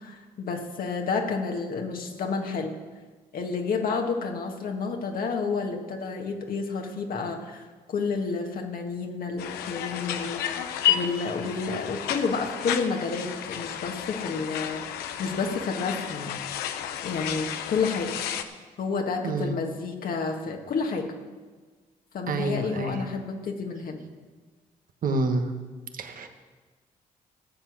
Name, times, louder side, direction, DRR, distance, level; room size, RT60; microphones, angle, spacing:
voice 1, 0.0-2.7 3.3-14.8 15.2-16.4 17.0-18.2 18.8-21.1 22.1-24.0, left 4 dB, 65° left, 2 dB, 1.8 m, -30 dB
sound 1, 9.4-18.4, left 10 dB, 90° left, 0.7 m, -32 dB
voice 2, 22.3-23.0 25.0-25.5 26.0-26.3, right 2 dB, 60° right, 6 dB, 1.4 m, -27 dB
13.5 x 7.7 x 6.3 m, 1.4 s
supercardioid pair, 55°, 16 cm